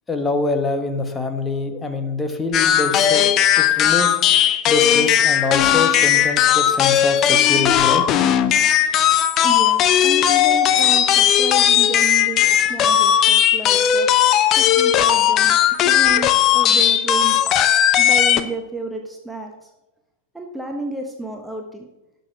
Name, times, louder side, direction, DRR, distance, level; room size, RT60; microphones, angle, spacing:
voice 1, 0.1-3.3 3.6-4.2 4.7-8.1, left 3 dB, 15° left, 6 dB, 1.5 m, -25 dB
sound 1, 2.5-18.4, left 10 dB, 35° left, 0.8 m, -17 dB
voice 2, 9.4-14.1 14.6-15.6 15.8-17.4 18.0-19.7 20.3-21.9, right 2 dB, 5° right, 3 dB, 1.2 m, -31 dB
12.0 x 6.8 x 6.7 m, 0.98 s
figure-of-eight pair, 90°, 0 cm